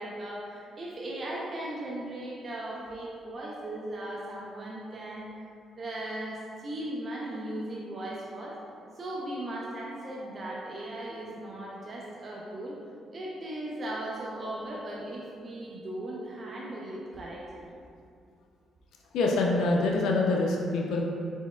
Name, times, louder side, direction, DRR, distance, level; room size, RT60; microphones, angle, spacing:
voice 1, 0.0-5.3 5.8-8.6 8.9-12.8 13.1-17.7, right 1 dB, 40° right, -4 dB, 0.6 m, -37 dB
voice 2, 19.1-21.0, left 2 dB, 80° left, -1 dB, 0.4 m, -25 dB
4.4 x 4.0 x 2.3 m, 2.4 s
cardioid pair, 90°, 0 cm